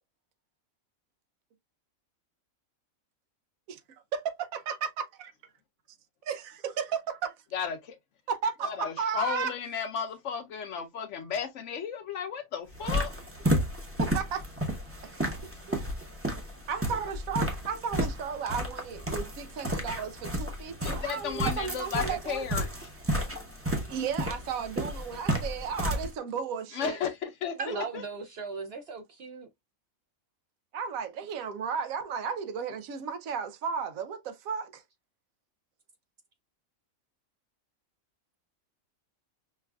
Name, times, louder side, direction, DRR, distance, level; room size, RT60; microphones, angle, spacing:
voice 1, 4.1-5.3 6.2-7.4 8.3-9.5 14.0-14.5 15.0-15.8 16.7-22.5 23.9-27.0 27.6-27.9 30.7-34.8, right 6 dB, 85° right, 1.0 m, -34 dB
voice 2, 7.5-8.0 8.6-13.1 20.8-22.9 26.7-27.6 27.9-28.0, left 7 dB, 65° left, 1.0 m, -34 dB
sound 1, 12.7-26.1, equal, 15° right, 0.6 m, -32 dB
voice 3, 27.6-29.5, right 4 dB, 60° right, 0.7 m, -38 dB
5.4 x 2.3 x 2.2 m
omnidirectional pair, 1.4 m